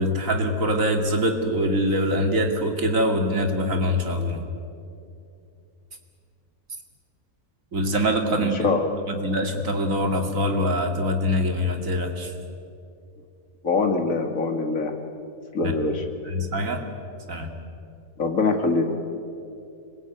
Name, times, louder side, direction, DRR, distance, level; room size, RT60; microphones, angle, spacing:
voice 1, 0.0-4.4 7.7-8.7 9.0-12.3 15.6-15.7 16.2-16.8 17.3-17.6, equal, 55° right, 4 dB, 2.8 m, -24 dB
voice 2, 8.4-8.9 13.6-14.9 15.5-16.0 18.2-18.8, left 3 dB, 60° left, 4 dB, 2.5 m, -23 dB
25.5 x 21.5 x 9.4 m, 2.6 s
omnidirectional pair, 1.6 m